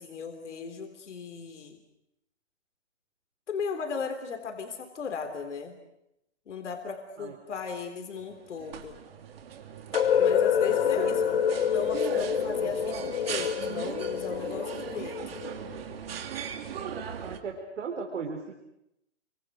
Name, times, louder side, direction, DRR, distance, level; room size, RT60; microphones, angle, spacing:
voice 1, 0.0-1.8 3.5-5.8 6.5-9.0 10.2-11.3 11.6-15.4, left 5 dB, 70° left, 5 dB, 3.7 m, -37 dB
sound 1, 8.2-17.4, right 8 dB, 50° right, 2.9 m, -39 dB
sound 2, 9.9-15.8, left 8 dB, 50° left, 1.6 m, -27 dB
voice 2, 10.6-11.1 16.8-16.9 17.2-18.5, right 5 dB, 65° right, 2 dB, 4.1 m, -37 dB
29.5 x 25.0 x 6.5 m, 0.83 s
hypercardioid pair, 165°, 37 cm